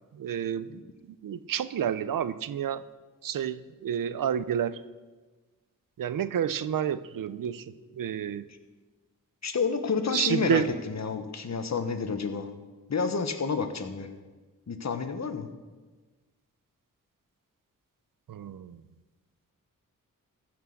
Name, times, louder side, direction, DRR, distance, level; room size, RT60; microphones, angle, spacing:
voice 1, 0.1-0.8 1.2-2.8 3.2-4.8 6.0-7.7 7.9-8.4 10.1-10.7 18.3-18.8, right 9 dB, 80° right, 15 dB, 0.6 m, -29 dB
voice 2, 9.4-12.5 12.9-14.1 14.7-15.5, left 5 dB, 55° left, 8 dB, 1.3 m, -30 dB
14.5 x 6.2 x 7.2 m, 1.3 s
cardioid pair, 65°, 33 cm